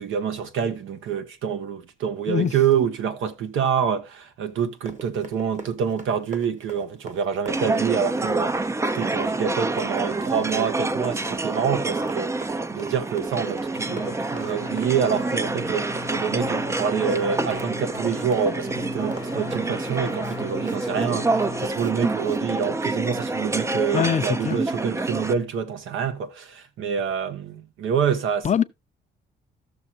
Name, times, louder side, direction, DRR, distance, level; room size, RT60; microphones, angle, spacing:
voice 1, 0.0-8.7 8.9-28.5, right 7 dB, 80° right, 1.2 m, -27 dB
Run, 4.6-21.9 22.2-22.4, right 4 dB, 40° right, 1.3 m, -42 dB
sound 1, 7.5-25.3, right 2 dB, 15° right, 0.4 m, -27 dB
sound 2, 13.7-21.7, left 9 dB, 85° left, 1.0 m, -40 dB
voice 2, 23.9-24.6 28.4-28.6, left 8 dB, 35° left, 0.6 m, -22 dB
14.0 x 6.3 x 2.7 m
cardioid pair, 90°, 20 cm